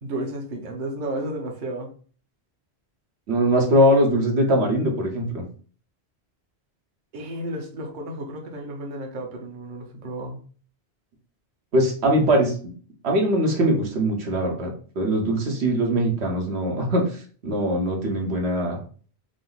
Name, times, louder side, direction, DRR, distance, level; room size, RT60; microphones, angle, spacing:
voice 1, 0.0-1.9 7.1-10.4, right 1 dB, 50° right, 1 dB, 0.9 m, -32 dB
voice 2, 3.3-5.4 11.7-12.5 13.0-18.8, right 1 dB, 90° right, 1 dB, 1.3 m, -21 dB
4.9 x 2.0 x 3.9 m, 0.42 s
omnidirectional pair, 1.1 m